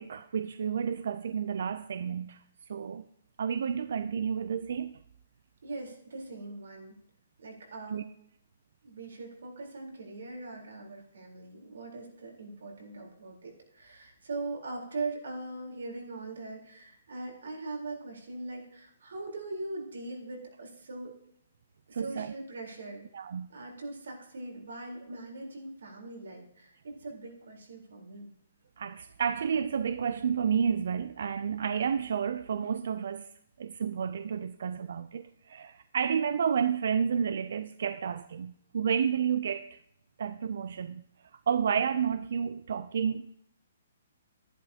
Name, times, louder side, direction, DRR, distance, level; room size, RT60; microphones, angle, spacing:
voice 1, 0.0-2.4 2.7-3.0 3.4-5.0 7.9-8.0 21.9-22.3 23.1-23.5 28.8-33.3 33.6-39.8 40.2-41.0 41.5-43.4, right 7 dB, 55° right, 0.3 m, -30 dB
voice 2, 5.6-7.0 7.4-8.1 8.8-21.1 21.9-23.0 23.5-28.3, right 3 dB, 90° right, 3.8 m, -41 dB
12.5 x 11.0 x 2.8 m
hypercardioid pair, 180°, 0 cm